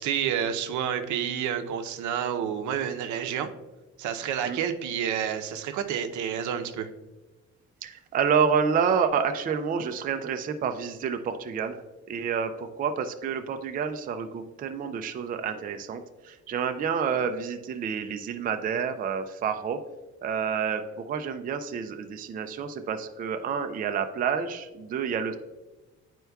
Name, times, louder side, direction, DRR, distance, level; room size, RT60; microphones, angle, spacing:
voice 1, 0.0-3.5 4.0-6.9, right 8 dB, 85° right, 7 dB, 0.6 m, -29 dB
voice 2, 7.8-11.8 12.1-19.8 20.2-25.4, right 6 dB, 30° right, 7 dB, 0.4 m, -29 dB
9.3 x 4.5 x 2.3 m, 1.1 s
cardioid pair, 150°, 29 cm